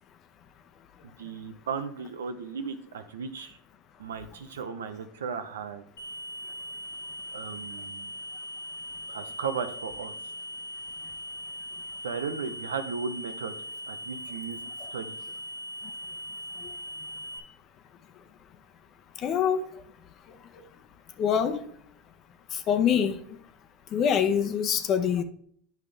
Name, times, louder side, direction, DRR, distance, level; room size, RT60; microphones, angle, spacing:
voice 1, 1.2-3.6 4.0-5.8 7.3-8.1 9.1-10.1 12.0-13.5 13.9-14.6 14.9-15.1, right 6 dB, 90° right, 9 dB, 0.8 m, -35 dB
sound 1, 6.0-17.4, equal, 90° left, 1.7 m, -40 dB
voice 2, 19.2-19.6 21.2-21.6 22.5-23.2 23.9-25.2, left 8 dB, 45° left, 9 dB, 0.9 m, -24 dB
9.2 x 5.6 x 3.4 m, 0.63 s
hypercardioid pair, 95°, 0 cm